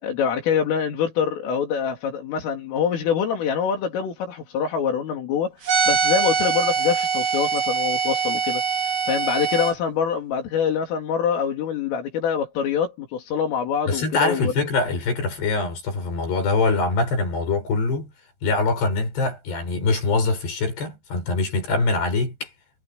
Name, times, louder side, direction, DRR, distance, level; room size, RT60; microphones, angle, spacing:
voice 1, 0.0-5.6 5.9-8.6 9.1-14.5, left 7 dB, 85° left, 6.1 m, -25 dB
sound 1, 5.6-9.7, right 6 dB, 45° right, 4.4 m, -23 dB
voice 2, 13.9-18.1 18.4-22.5, left 3 dB, 55° left, 9.7 m, -23 dB
omnidirectional pair, 5.7 m